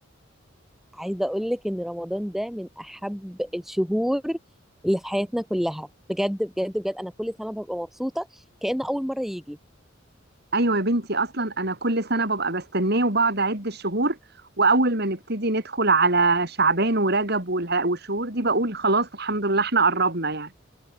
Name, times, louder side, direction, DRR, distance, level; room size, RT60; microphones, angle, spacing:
voice 1, 0.9-4.4 4.8-8.3 8.6-9.6, equal, ahead, 2.2 m, -28 dB
voice 2, 10.5-14.2 14.6-20.5, right 3 dB, 55° right, 6.4 m, -23 dB
head